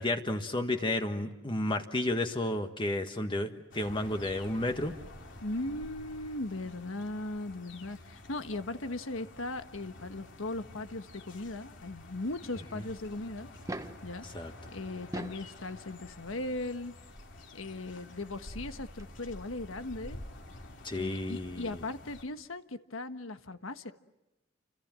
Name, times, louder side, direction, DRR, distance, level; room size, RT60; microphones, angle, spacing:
voice 1, 0.0-4.9 14.3-14.5 20.8-21.7, left 1 dB, 25° left, 6 dB, 1.5 m, -32 dB
sound 1, 3.7-22.2, left 1 dB, 65° left, 3.3 m, -49 dB
voice 2, 5.4-13.5 14.0-14.3 14.7-16.9 17.5-20.2 20.9-23.9, left 2 dB, 80° left, 9 dB, 1.4 m, -38 dB
sound 2, 13.5-14.1 14.9-15.5 16.8-16.9 18.7-18.8 19.0-19.1, right 1 dB, 15° right, 1.1 m, -39 dB
30.0 x 26.0 x 7.6 m, 0.97 s
head